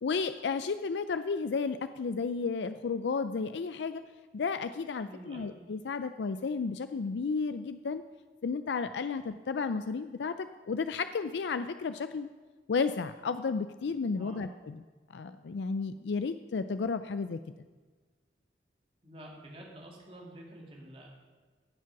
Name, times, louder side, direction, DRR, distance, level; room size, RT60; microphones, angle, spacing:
voice 1, 0.0-4.0 4.3-8.0 8.4-12.3 12.7-14.8 15.1-17.4, left 4 dB, 80° left, 11 dB, 0.4 m, -33 dB
voice 2, 5.0-5.5 14.1-14.4 19.0-21.1, right 1 dB, 35° right, -2 dB, 2.6 m, -48 dB
15.0 x 7.4 x 5.9 m, 1.4 s
head